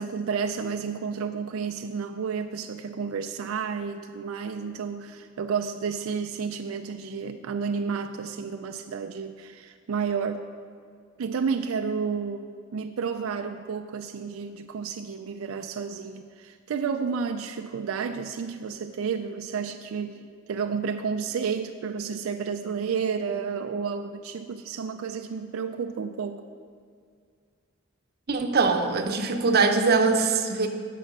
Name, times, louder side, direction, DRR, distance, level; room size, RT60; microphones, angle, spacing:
voice 1, 0.0-10.5 11.2-26.4, right 6 dB, 85° right, 7 dB, 0.4 m, -31 dB
voice 2, 28.3-30.7, right 4 dB, 50° right, 5 dB, 0.7 m, -22 dB
8.8 x 6.2 x 5.4 m, 2.1 s
head